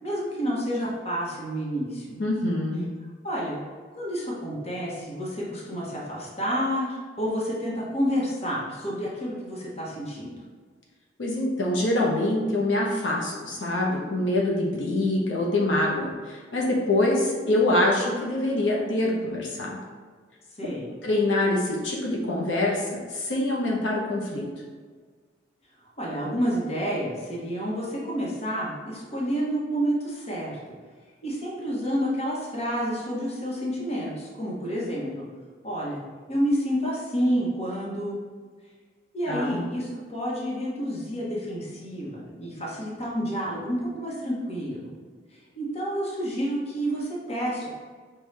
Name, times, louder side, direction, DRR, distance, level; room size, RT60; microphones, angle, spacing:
voice 1, 0.0-2.2 3.2-3.6 3.9-10.3 20.6-20.9 26.0-30.6 31.2-35.2 35.6-36.0 36.3-38.2 39.1-44.9 45.6-47.7, equal, 35° left, -5 dB, 0.9 m, -29 dB
voice 2, 2.2-2.9 11.2-19.8 21.0-24.5 39.3-39.6, left 1 dB, 85° left, -3 dB, 0.7 m, -25 dB
5.2 x 2.3 x 3.2 m, 1.5 s
head